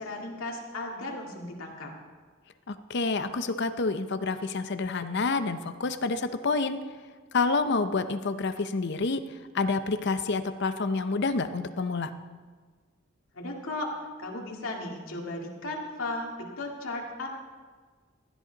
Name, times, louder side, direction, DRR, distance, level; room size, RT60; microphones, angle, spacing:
voice 1, 0.0-1.9 13.3-13.9 14.2-17.3, left 2 dB, 90° left, 0 dB, 2.2 m, -35 dB
voice 2, 2.7-6.8 7.3-9.2 9.5-12.1, left 3 dB, 55° left, 10 dB, 0.7 m, -28 dB
16.0 x 11.0 x 4.0 m, 1.5 s
head